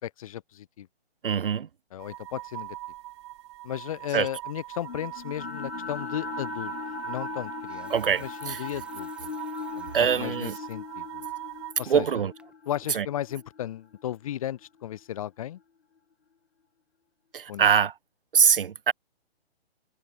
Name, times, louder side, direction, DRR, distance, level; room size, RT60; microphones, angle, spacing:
voice 1, 0.0-0.9 1.9-2.8 3.6-6.7 7.0-7.9 8.2-9.3 9.8-11.2 11.8-12.1 12.7-15.6 17.5-17.7, left 11 dB, 35° left, 4.2 m, -35 dB
voice 2, 1.2-1.7 4.1-4.3 7.9-8.6 9.9-10.6 11.9-12.3 12.9-13.1 17.3-17.9 18.3-18.9, right 7 dB, 60° right, 1.3 m, -23 dB
sound 1, 2.0-11.7, right 17 dB, 25° right, 7.9 m, -41 dB
sound 2, 4.8-15.0, left 5 dB, 85° left, 5.0 m, -39 dB
sound 3, 6.3-6.4 7.4-10.8 11.2-11.3 11.8-12.1 12.4-12.5, right 3 dB, 5° right, 5.3 m, -56 dB
hypercardioid pair, 170°, 31 cm